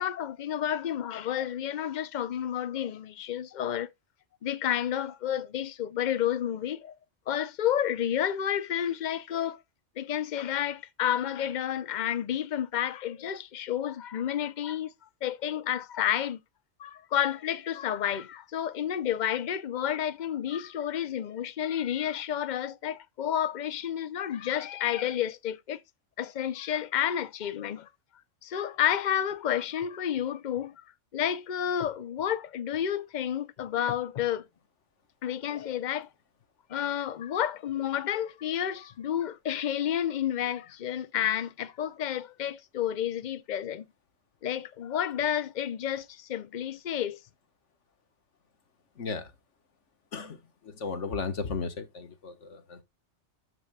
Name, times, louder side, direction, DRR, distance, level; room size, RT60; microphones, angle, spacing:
voice 1, 0.0-3.9 4.4-6.9 7.3-9.6 10.0-14.9 15.2-16.4 16.8-25.8 26.2-27.9 28.4-30.8 31.1-34.4 35.2-36.1 36.7-43.9 44.4-47.2, left 10 dB, 45° left, 0.7 m, -30 dB
voice 2, 48.9-49.3 50.1-52.8, left 4 dB, 75° left, 1.7 m, -35 dB
13.0 x 5.9 x 2.3 m
omnidirectional pair, 1.2 m